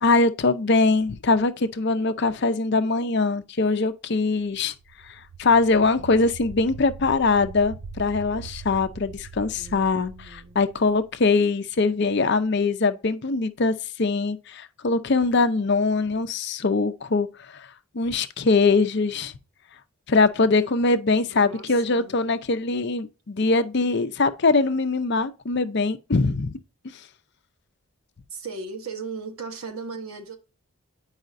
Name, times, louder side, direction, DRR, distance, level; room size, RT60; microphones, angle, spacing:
voice 1, 0.0-4.7 5.4-13.7 14.0-17.7 17.9-19.3 20.1-26.6, left 3 dB, 50° left, 0.5 m, -22 dB
sound 1, 4.6-11.4, right 5 dB, 60° right, 0.5 m, -42 dB
voice 2, 9.5-10.6 21.1-22.1 28.3-30.4, right 4 dB, 75° right, 1.2 m, -37 dB
9.2 x 4.9 x 2.5 m
head